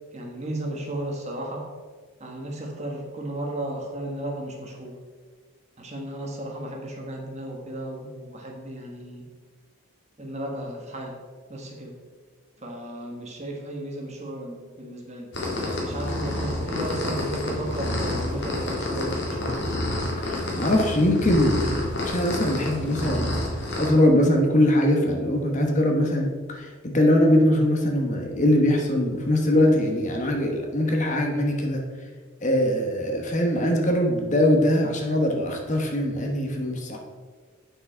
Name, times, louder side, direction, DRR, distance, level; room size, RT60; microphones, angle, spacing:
voice 1, 0.1-1.6 2.2-5.0 5.8-9.2 10.2-11.2 11.5-12.0 12.6-19.7, right 1 dB, 30° right, 0 dB, 1.3 m, -34 dB
sound 1, 15.3-23.9, left 1 dB, 55° left, 2.0 m, -28 dB
voice 2, 20.2-21.7 22.0-23.4 23.8-31.8 32.4-37.0, left 1 dB, 35° left, 1 dB, 1.1 m, -22 dB
8.6 x 6.1 x 4.4 m, 1.5 s
head